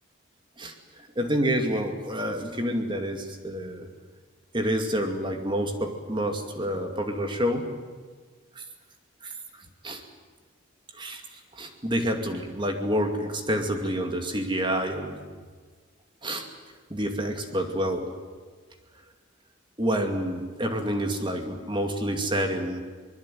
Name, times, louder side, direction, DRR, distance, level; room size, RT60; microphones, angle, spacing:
voice 1, 1.2-3.9 4.5-7.7 8.6-8.7 9.2-9.3 9.8-10.0 10.9-11.2 11.5-15.2 16.2-16.5 16.9-18.1 19.8-22.8, equal, 25° right, 5 dB, 2.4 m, -28 dB
24.0 x 21.5 x 9.4 m, 1.5 s
head